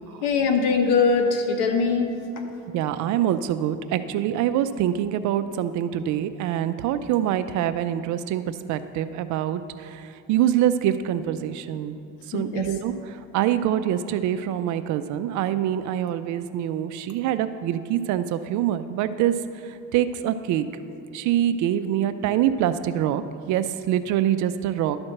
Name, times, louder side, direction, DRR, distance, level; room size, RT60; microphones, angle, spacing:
voice 1, 0.2-2.1 12.3-12.7, left 5 dB, 80° left, 4 dB, 1.2 m, -21 dB
voice 2, 2.7-12.0 12.3-19.3 19.6-20.7 21.1-23.2 23.5-25.0, right 11 dB, 60° right, 11 dB, 0.6 m, -25 dB
11.5 x 4.4 x 6.5 m, 2.7 s
cardioid pair, 125°, 32 cm